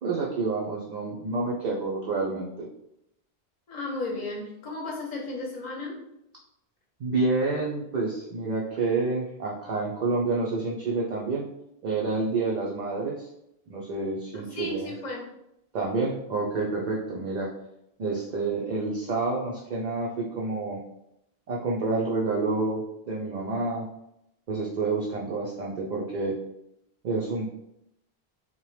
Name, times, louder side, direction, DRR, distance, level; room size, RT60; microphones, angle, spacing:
voice 1, 0.0-2.7 7.0-11.5 11.8-13.3 13.7-14.9 15.7-17.5 18.0-20.8 21.5-23.9 24.5-26.4 27.0-27.5, right 3 dB, 55° right, -3 dB, 0.5 m, -28 dB
voice 2, 3.7-5.9 14.3-15.2, left 2 dB, 45° left, -1 dB, 0.8 m, -34 dB
2.8 x 2.1 x 3.1 m, 0.80 s
omnidirectional pair, 1.1 m